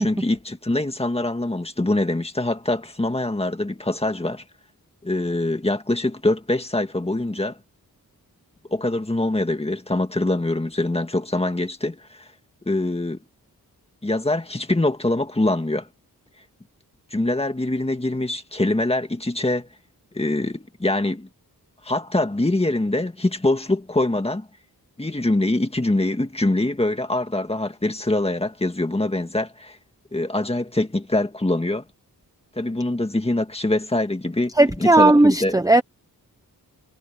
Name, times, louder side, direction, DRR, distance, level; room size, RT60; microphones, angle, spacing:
voice 1, 0.0-4.4 5.0-7.6 8.7-12.3 12.7-13.2 14.0-15.9 17.1-19.7 20.1-21.3 21.8-24.5 25.0-29.8 30.1-31.8 32.6-34.5 34.8-35.5, left 2 dB, 15° left, 1.9 m, -24 dB
voice 2, 34.6-35.8, right 2 dB, 10° right, 0.8 m, -15 dB
wide cardioid pair, 110°, 36 cm